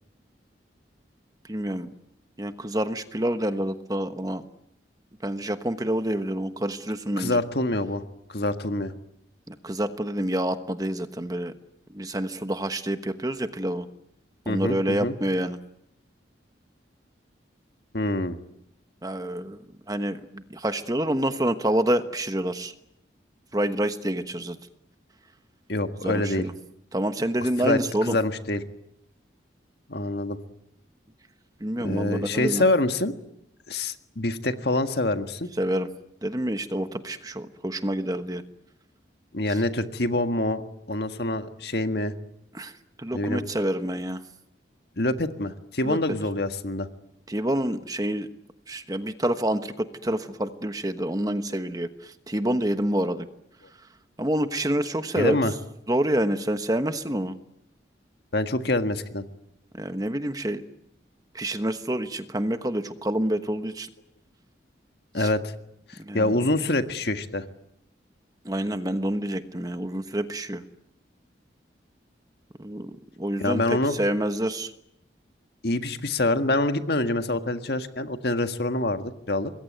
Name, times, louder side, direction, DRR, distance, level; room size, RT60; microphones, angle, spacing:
voice 1, 1.5-1.9 2.4-4.4 5.2-7.4 9.5-11.5 11.9-13.9 14.5-15.6 19.0-19.6 19.9-22.7 23.5-24.6 26.0-26.5 26.9-28.2 31.6-32.6 35.6-35.9 36.2-38.4 42.6-42.7 43.0-44.2 45.8-46.0 47.3-48.3 48.7-53.3 54.2-55.4 55.9-57.4 59.7-60.6 61.3-63.9 65.2-65.3 66.1-66.3 68.4-70.6 72.6-74.7, right 1 dB, 20° right, 9 dB, 1.1 m, -27 dB
voice 2, 7.2-8.0 8.3-8.9 14.5-15.1 17.9-18.4 25.7-26.5 27.4-28.6 29.9-30.4 31.8-33.1 33.7-35.5 39.3-40.6 40.9-42.1 43.1-43.5 45.0-46.9 55.2-55.5 58.3-59.3 65.1-65.5 65.9-67.4 73.4-74.0 75.6-79.5, left 2 dB, 60° left, 8 dB, 1.7 m, -26 dB
26.0 x 21.5 x 9.4 m, 0.78 s
head